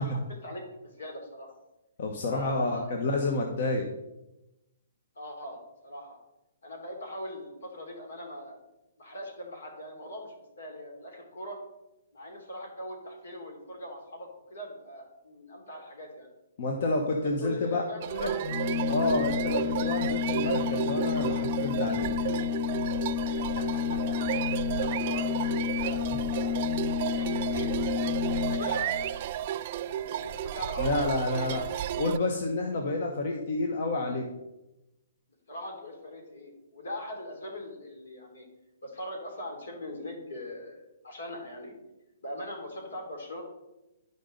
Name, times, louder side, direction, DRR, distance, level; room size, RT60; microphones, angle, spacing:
voice 1, 0.0-1.5 2.3-3.0 5.1-6.2 6.6-8.6 9.0-11.6 12.1-16.3 17.2-18.4 23.4-26.7 27.1-27.8 28.3-29.2 29.8-31.6 35.5-38.5 38.8-41.7 42.2-43.4, left 1 dB, 85° left, 2 dB, 3.0 m, -41 dB
voice 2, 2.0-3.9 16.6-17.8 18.1-18.3 18.9-22.1 30.8-31.7 32.0-34.3, left 2 dB, 55° left, 2 dB, 1.1 m, -29 dB
sound 1, 18.0-32.2, right 11 dB, 40° right, 0.3 m, -33 dB
Organ, 18.3-29.1, left 9 dB, 25° left, 0.7 m, -30 dB
11.5 x 5.3 x 3.9 m, 0.96 s
hypercardioid pair, 155°, 0 cm